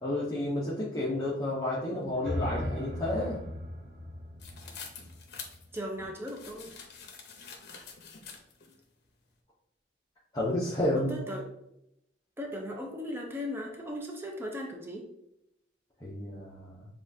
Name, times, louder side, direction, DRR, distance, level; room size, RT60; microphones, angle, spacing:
voice 1, 0.0-3.4 7.7-7.8 10.3-11.2 16.0-16.9, left 1 dB, 20° left, -6 dB, 0.8 m, -31 dB
sound 1, 2.0-6.1, left 1 dB, 60° right, 0.7 m, -38 dB
sound 2, 4.4-8.7, left 5 dB, 60° left, 0.8 m, -46 dB
voice 2, 5.7-6.7 10.9-11.5 12.4-15.1, left 1 dB, 15° right, 0 dB, 0.5 m, -37 dB
7.1 x 2.4 x 2.7 m, 0.81 s
head